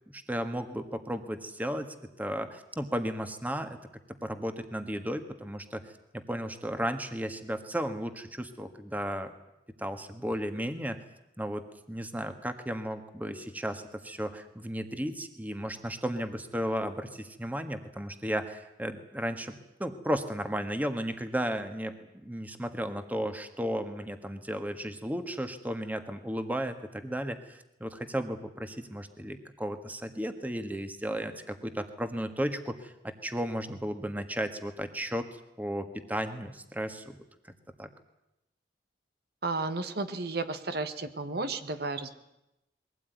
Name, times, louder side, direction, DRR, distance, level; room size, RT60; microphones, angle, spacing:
voice 1, 0.1-3.8 4.2-5.8 6.1-9.3 9.8-11.0 11.4-19.5 19.8-21.9 22.2-35.3 35.6-37.1 37.8-37.9, equal, 10° right, 8 dB, 1.6 m, -34 dB
voice 2, 39.4-42.1, right 3 dB, 60° right, 9 dB, 1.4 m, -33 dB
22.5 x 17.0 x 9.4 m, 0.89 s
head